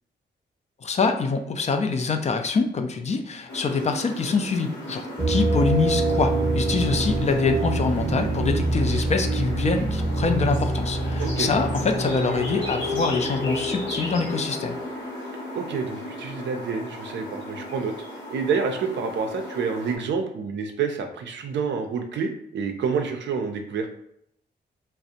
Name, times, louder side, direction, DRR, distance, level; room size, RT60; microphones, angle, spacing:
voice 1, 0.8-14.8, left 4 dB, 35° left, 6 dB, 0.4 m, -25 dB
sound 1, 3.5-20.0, left 1 dB, 75° left, 0.8 m, -34 dB
sound 2, 5.2-13.9, right 2 dB, 5° right, 0.7 m, -26 dB
voice 2, 11.2-11.7 15.5-17.9 18.3-23.9, right 5 dB, 70° right, 5 dB, 0.4 m, -28 dB
2.4 x 2.0 x 2.7 m, 0.72 s
supercardioid pair, 55°, 19 cm